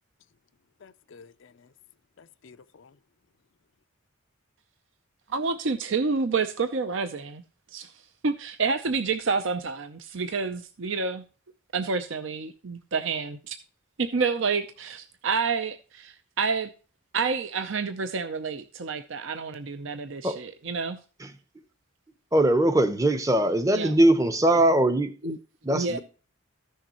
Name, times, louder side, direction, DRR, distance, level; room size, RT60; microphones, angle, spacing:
voice 1, 0.8-1.7 2.2-2.9, left 5 dB, 60° left, 0.5 m, -52 dB
voice 2, 5.3-7.4 7.7-7.9 8.2-11.2 11.7-13.6 14.0-16.7 17.1-21.0 23.7-23.9 25.2-25.4 25.7-26.0, right 4 dB, 60° right, 0.6 m, -29 dB
voice 3, 22.3-25.3 25.6-26.0, right 1 dB, 15° right, 0.7 m, -21 dB
14.5 x 6.5 x 3.0 m
head